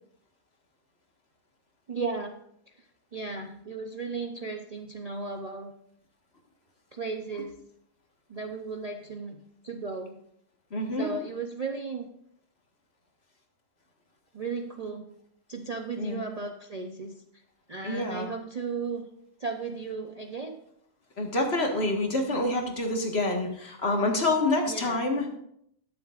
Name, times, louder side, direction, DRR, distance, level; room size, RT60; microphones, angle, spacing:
voice 1, 1.9-2.4 2.8-2.9 3.1-5.7 6.9-7.6 8.3-10.2 11.0-12.1 14.3-15.0 15.5-17.1 17.7-19.1 19.4-20.6 24.7-25.0, right 4 dB, 40° right, 3 dB, 0.6 m, -35 dB
voice 2, 10.7-11.1 16.0-16.2 17.8-18.3 21.2-25.3, left 2 dB, 50° left, 1 dB, 1.9 m, -27 dB
21.0 x 7.1 x 2.5 m, 0.73 s
omnidirectional pair, 1.4 m